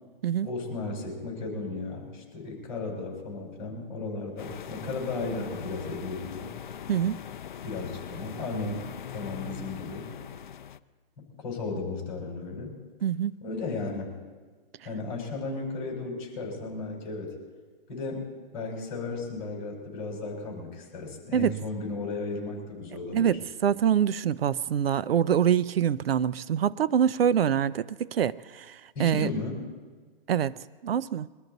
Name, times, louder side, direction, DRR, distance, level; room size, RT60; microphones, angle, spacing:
voice 1, 0.4-6.5 7.6-8.8 9.1-10.1 11.2-12.8 13.4-14.1 14.8-17.4 17.9-23.4 28.9-29.7, left 3 dB, 20° left, -2 dB, 5.1 m, -35 dB
sound 1, 4.4-10.8, left 9 dB, 55° left, 0.6 m, -41 dB
voice 2, 6.9-7.2 13.0-13.3 21.3-21.6 23.1-29.3 30.3-30.6 30.8-31.3, right 9 dB, 90° right, 18 dB, 0.6 m, -25 dB
23.0 x 13.0 x 4.0 m, 1.4 s
hypercardioid pair, 180°, 29 cm